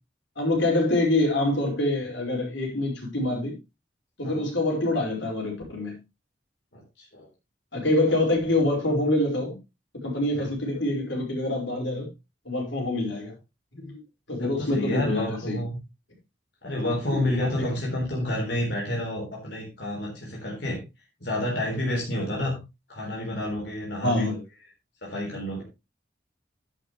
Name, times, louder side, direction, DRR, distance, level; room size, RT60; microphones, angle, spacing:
voice 1, 0.4-3.5 4.2-6.0 7.7-9.6 10.0-12.1 12.5-13.3 13.7-14.0 14.3-15.6 17.1-17.7 24.0-24.3, left 1 dB, 85° left, 5.2 m, -25 dB
voice 2, 6.7-7.3 10.4-10.5 14.4-15.8 16.6-20.8 21.2-22.6 22.9-24.4 25.0-25.6, left 1 dB, 65° left, 3.8 m, -29 dB
10.5 x 10.5 x 3.2 m
head